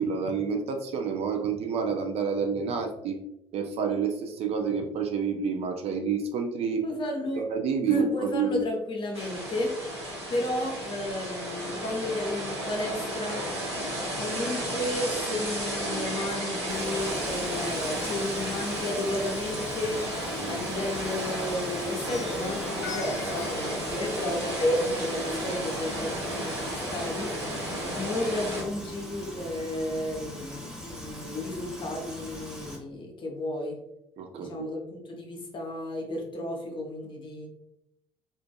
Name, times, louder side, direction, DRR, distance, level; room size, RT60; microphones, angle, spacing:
voice 1, 0.0-3.2 3.5-6.8 7.4-8.6 20.3-20.6 27.7-28.0 34.2-34.7, right 6 dB, 50° right, 4 dB, 0.4 m, -29 dB
voice 2, 6.8-7.4 7.9-13.5 14.1-20.0 20.4-27.3 27.9-33.8 34.4-37.5, left 1 dB, 35° left, 1 dB, 0.7 m, -32 dB
sound 1, 9.1-28.6, equal, 85° right, 0.8 m, -33 dB
Plucked string instrument, 15.8-17.9 22.1-24.7, left 1 dB, 90° left, 0.4 m, -41 dB
Frying (food), 16.7-32.8, left 1 dB, 5° right, 0.8 m, -41 dB
2.5 x 2.5 x 2.3 m, 0.83 s
figure-of-eight pair, 50°, 14 cm